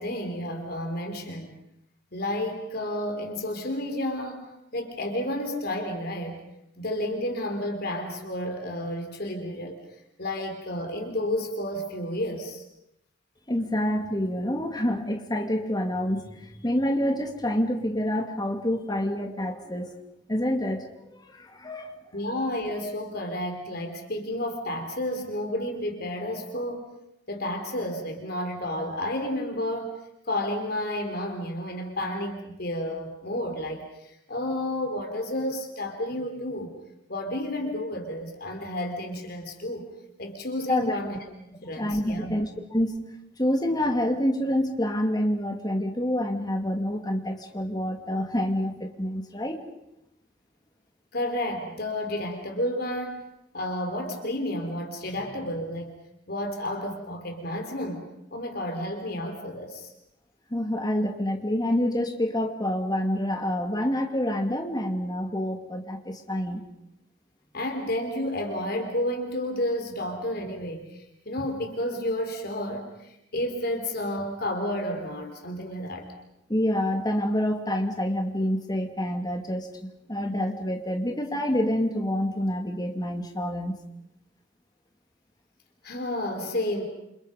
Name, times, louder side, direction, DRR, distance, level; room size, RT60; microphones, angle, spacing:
voice 1, 0.0-1.6 2.1-6.4 6.8-9.8 10.2-12.6 22.1-26.8 27.3-29.9 30.3-36.7 37.1-39.9 40.2-41.2 41.5-42.3 51.1-56.0 56.3-59.9 67.5-76.1 85.8-86.8, left 1 dB, 55° left, 4 dB, 3.6 m, -31 dB
voice 2, 13.5-19.9 20.3-20.8 21.1-22.0 40.7-41.0 41.8-42.9 43.4-49.6 60.5-66.6 76.5-79.7 80.1-83.8, left 1 dB, 20° left, 4 dB, 2.6 m, -27 dB
28.5 x 28.0 x 5.3 m, 0.83 s
head